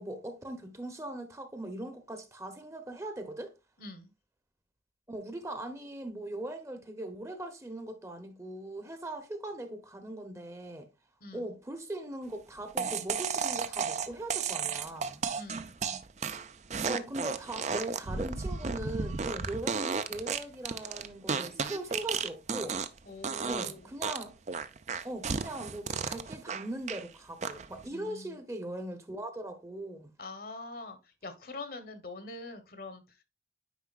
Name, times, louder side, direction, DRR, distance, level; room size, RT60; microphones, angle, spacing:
voice 1, 0.0-3.5 5.1-10.9 11.3-15.2 16.8-22.8 23.5-24.4 25.0-30.1, right 1 dB, 15° right, 0.8 m, -40 dB
voice 2, 3.8-4.1 11.2-11.5 15.3-15.7 23.1-23.9 27.9-28.4 30.2-33.0, left 2 dB, 55° left, 1.1 m, -44 dB
sound 1, 12.8-23.0 23.2-23.7 24.0-27.0 27.4-27.8, right 5 dB, 40° right, 0.5 m, -33 dB
9.3 x 4.8 x 2.4 m
head